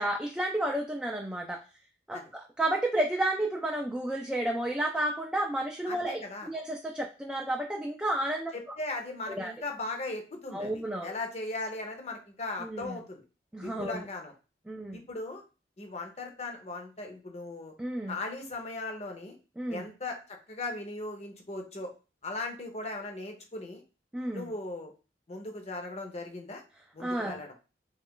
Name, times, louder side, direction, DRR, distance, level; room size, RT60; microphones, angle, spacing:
voice 1, 0.0-1.6 2.1-6.2 6.5-8.5 9.3-9.5 10.5-11.1 12.6-13.0 13.5-14.0 14.7-15.0 17.8-18.2 19.6-19.9 24.1-24.5 27.0-27.4, right 1 dB, 5° right, 1 dB, 0.3 m, -31 dB
voice 2, 5.9-6.5 8.5-13.2 13.6-14.3 14.9-15.4 15.8-17.7 18.1-19.4 19.7-21.9 22.2-23.8 24.3-24.9 25.3-26.6 26.9-27.5, left 2 dB, 40° left, 3 dB, 0.7 m, -38 dB
3.1 x 2.4 x 3.6 m, 0.32 s
head